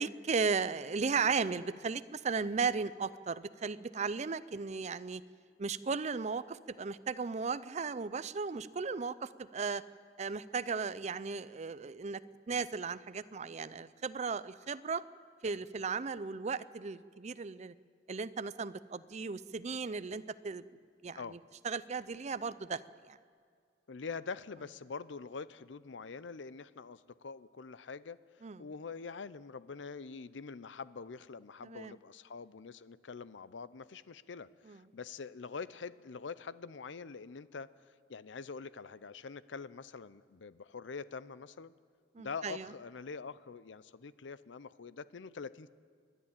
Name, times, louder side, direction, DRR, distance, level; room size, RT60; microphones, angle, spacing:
voice 1, 0.0-5.2 5.6-9.8 10.2-12.2 12.5-15.0 15.4-17.7 18.1-20.6 21.0-21.4 21.6-22.8 23.1-23.2 28.4-28.6 31.6-31.9 34.7-34.8 42.2-42.7, right 5 dB, 40° right, 15 dB, 0.5 m, -36 dB
voice 2, 23.9-28.2 28.6-37.7 38.1-41.7 42.2-45.7, left 5 dB, 85° left, 16 dB, 0.6 m, -45 dB
28.0 x 11.0 x 8.9 m, 2.1 s
head